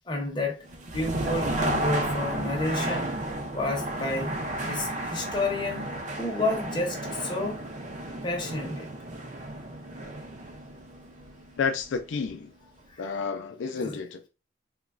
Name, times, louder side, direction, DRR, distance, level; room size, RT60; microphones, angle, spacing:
voice 1, 0.1-0.6 0.9-3.1 3.5-4.3 4.6-5.9 6.2-7.6 8.2-8.9 13.7-14.0, left 2 dB, 25° left, 0.6 m, -30 dB
sound 1, 0.6-12.5, right 1 dB, 40° right, 0.4 m, -33 dB
voice 2, 11.6-12.5 13.0-14.3, left 5 dB, 85° left, 0.4 m, -30 dB
3.0 x 2.2 x 2.4 m
head